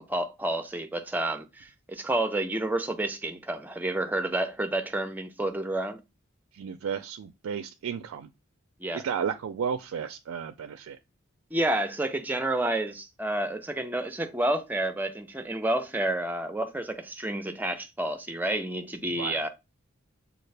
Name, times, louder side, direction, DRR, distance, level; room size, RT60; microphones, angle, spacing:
voice 1, 0.0-6.0 8.8-9.0 11.5-19.5, right 1 dB, 10° right, 0.4 m, -30 dB
voice 2, 6.5-8.3 8.9-11.0 19.2-19.4, right 7 dB, 80° right, 0.3 m, -33 dB
6.4 x 2.4 x 3.3 m
head